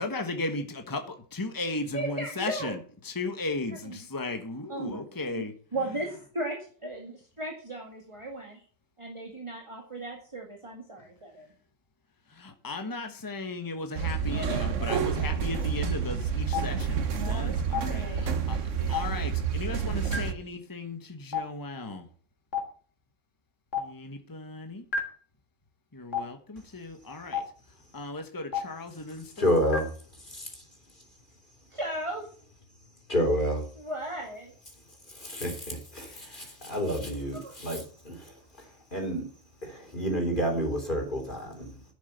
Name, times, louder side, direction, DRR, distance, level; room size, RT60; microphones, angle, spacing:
voice 1, 0.0-5.5 12.3-18.6 18.9-22.1 23.8-24.8 25.9-27.4 27.9-29.6, left 2 dB, 15° left, 5 dB, 1.3 m, -36 dB
voice 2, 1.9-2.8 3.8-4.0 4.7-5.0 5.4-5.5 5.7-8.6 9.0-11.5 17.2-17.5 17.8-18.2 18.8-18.9 31.7-32.3 33.8-34.5 37.4-37.6, right 1 dB, 25° right, 1 dB, 2.1 m, -36 dB
sound 1, 14.0-20.3, right 7 dB, 75° right, 1.4 m, -29 dB
Stream, 16.5-16.6 17.7-17.8 18.9-19.0 20.1-20.2 21.3-21.4 22.5-22.6 23.7-23.8 24.9-25.0 26.1-26.2 27.3-27.4 28.5-28.6 29.7-29.8, left 7 dB, 75° left, 2.8 m, -27 dB
voice 3, 29.4-29.9 30.3-30.5 33.1-33.7 35.1-38.3 38.9-39.2 39.6-41.7, equal, 40° left, 2 dB, 3.6 m, -29 dB
11.0 x 7.1 x 6.9 m, 0.43 s
omnidirectional pair, 1.3 m